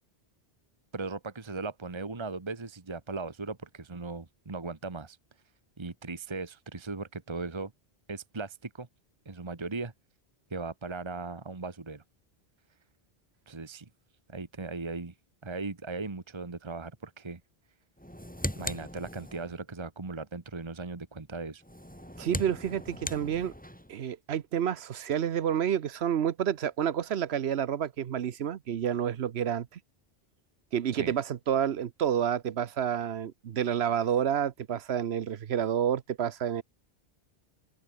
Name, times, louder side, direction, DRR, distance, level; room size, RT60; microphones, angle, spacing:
voice 1, 0.9-5.2 5.8-7.7 8.1-8.9 9.2-9.9 10.5-12.0 13.5-13.9 14.3-15.1 15.4-17.4 18.6-21.6 30.9-31.1, right 3 dB, 25° right, 1.3 m, -38 dB
sound 1, 18.0-19.6 21.6-23.9, equal, 5° left, 6.9 m, -39 dB
voice 2, 22.2-23.5 23.9-29.8 30.7-36.6, right 9 dB, 75° right, 1.1 m, -29 dB
open air
omnidirectional pair, 1.1 m